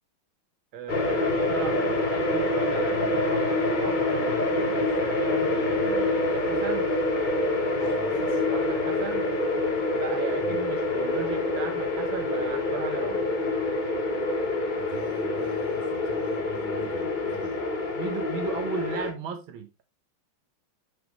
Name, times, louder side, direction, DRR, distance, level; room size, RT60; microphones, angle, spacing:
voice 1, 0.7-6.9 8.5-9.3 9.9-13.2 17.9-19.8, right 7 dB, 70° right, 1.7 m, -37 dB
sound 1, 0.9-19.1, left 2 dB, 35° left, 0.8 m, -26 dB
voice 2, 7.8-8.4 10.4-10.6 14.8-17.7, left 2 dB, 55° left, 1.8 m, -44 dB
7.4 x 5.0 x 3.1 m
omnidirectional pair, 2.4 m